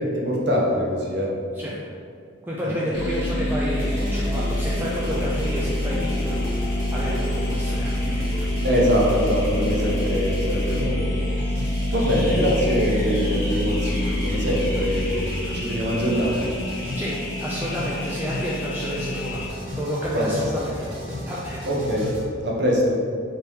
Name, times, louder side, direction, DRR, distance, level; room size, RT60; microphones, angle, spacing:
voice 1, 0.0-1.4 2.6-2.8 8.6-11.2 11.6-16.5 20.1-20.4 21.6-22.1 22.4-23.0, equal, 60° right, -3 dB, 0.7 m, -23 dB
voice 2, 2.4-8.3 17.0-20.7 21.3-21.7, equal, 10° right, -6 dB, 0.3 m, -30 dB
sound 1, 2.9-19.5, left 1 dB, 55° left, 0.8 m, -26 dB
sound 2, 3.8-22.2, left 1 dB, 90° right, 1.2 m, -35 dB
3.4 x 2.9 x 4.4 m, 2.3 s
head